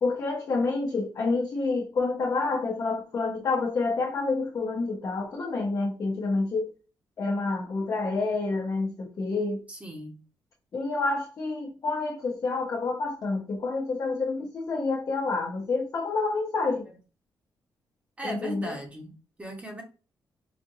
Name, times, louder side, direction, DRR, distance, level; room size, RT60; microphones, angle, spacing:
voice 1, 0.0-6.7 7.2-9.6 10.7-16.8 18.2-18.7, left 3 dB, 50° left, 0.9 m, -28 dB
voice 2, 9.7-10.2 18.2-19.8, equal, 20° right, 1.2 m, -38 dB
5.0 x 2.5 x 2.7 m
cardioid pair, 100°, 7 cm